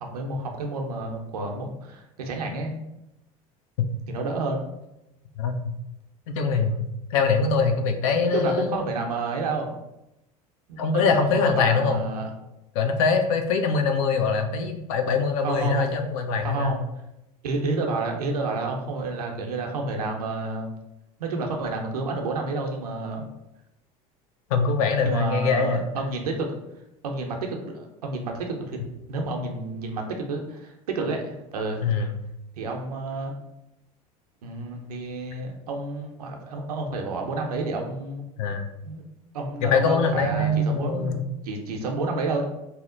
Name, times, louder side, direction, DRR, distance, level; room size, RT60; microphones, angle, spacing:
voice 1, 0.0-2.7 4.1-4.6 8.2-9.7 10.7-12.4 15.4-16.0 16.4-16.8 17.4-20.7 21.2-23.3 25.0-26.5 27.0-28.8 29.1-31.9 32.6-33.3 34.4-38.2 38.8-39.0 39.3-42.4, right 3 dB, 85° right, 2 dB, 0.6 m, -30 dB
voice 2, 5.4-5.7 6.3-8.8 10.8-12.1 12.7-16.7 24.5-25.8 31.8-32.1 38.4-38.7 39.6-41.2, left 4 dB, 70° left, 6 dB, 0.5 m, -23 dB
2.8 x 2.1 x 3.7 m, 0.89 s
hypercardioid pair, 80°, 19 cm